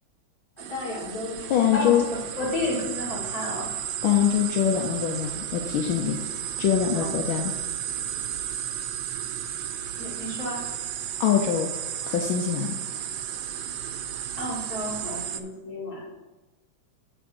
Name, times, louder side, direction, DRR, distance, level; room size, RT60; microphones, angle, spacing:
voice 1, 0.6-1.9 2.4-3.7 6.9-7.2 10.0-10.6 14.4-16.0, left 2 dB, 45° left, -6 dB, 2.7 m, -32 dB
sound 1, 0.6-15.4, right 10 dB, 75° right, 1.0 m, -33 dB
voice 2, 1.5-2.1 4.0-6.2 6.6-7.5 11.2-11.7 12.1-12.8, left 9 dB, 80° left, 2 dB, 1.4 m, -23 dB
9.3 x 3.4 x 6.2 m, 1.1 s
omnidirectional pair, 2.3 m